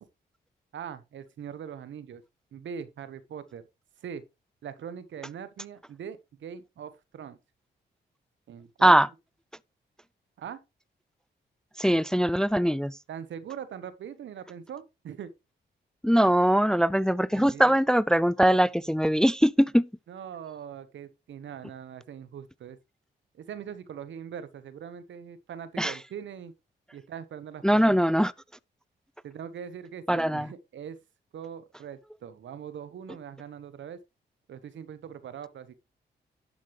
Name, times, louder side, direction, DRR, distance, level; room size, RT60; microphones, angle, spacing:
voice 1, 0.7-2.2 2.5-3.6 4.0-4.2 4.6-7.4 8.5-9.0 10.4-10.6 13.1-15.3 17.3-17.7 20.1-22.8 23.3-26.5 26.9-28.0 29.2-31.0 31.3-34.0 34.5-35.7, right 8 dB, 80° right, 1.3 m, -41 dB
voice 2, 11.8-13.0 16.0-19.9 25.8-26.0 27.6-28.3 30.1-30.5, equal, 5° left, 0.4 m, -22 dB
11.5 x 7.5 x 3.2 m
cardioid pair, 55°, 19 cm